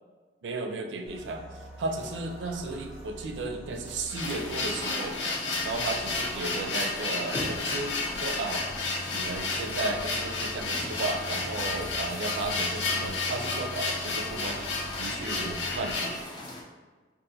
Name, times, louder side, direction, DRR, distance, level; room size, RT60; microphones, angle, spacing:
voice 1, 0.4-1.4 1.8-5.2 5.6-8.7 9.1-16.2, right 3 dB, 85° right, 4 dB, 0.4 m, -34 dB
sound 1, 1.1-15.8, equal, 5° right, 0.8 m, -45 dB
sound 2, 4.1-16.2, left 3 dB, 80° left, 0.6 m, -32 dB
sound 3, 4.2-16.6, left 1 dB, 25° left, 0.4 m, -41 dB
3.7 x 2.4 x 2.7 m, 1.4 s
head